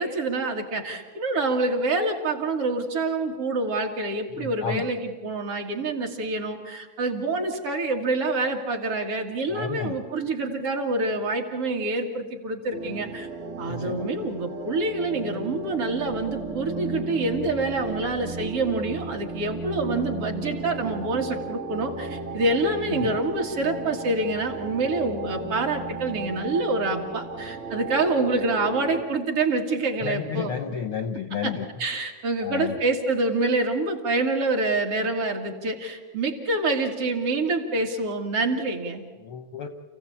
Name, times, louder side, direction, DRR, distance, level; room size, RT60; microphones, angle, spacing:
voice 1, 0.0-13.3 13.6-30.6 31.4-31.5 31.8-39.0, right 2 dB, 50° right, 2 dB, 2.8 m, -26 dB
voice 2, 4.3-4.9 9.5-10.0 13.7-14.1 22.9-23.1 30.0-31.7 32.4-32.8 39.2-39.7, left 7 dB, 65° left, 8 dB, 1.4 m, -32 dB
sound 1, 12.7-29.0, right 3 dB, 30° right, 1.3 m, -35 dB
29.0 x 16.0 x 8.6 m, 1.4 s
omnidirectional pair, 3.4 m